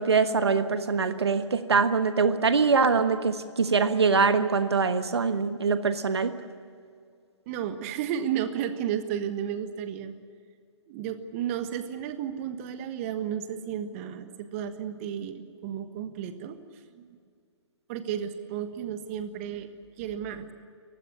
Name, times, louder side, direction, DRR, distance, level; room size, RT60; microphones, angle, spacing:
voice 1, 0.0-6.3, right 5 dB, 60° right, 10 dB, 1.3 m, -23 dB
voice 2, 7.5-10.1 10.9-16.6 16.9-17.1 17.9-19.7 20.0-20.5, right 9 dB, 30° right, 10 dB, 1.4 m, -33 dB
29.0 x 16.0 x 8.6 m, 2.3 s
figure-of-eight pair, 125°, 15 cm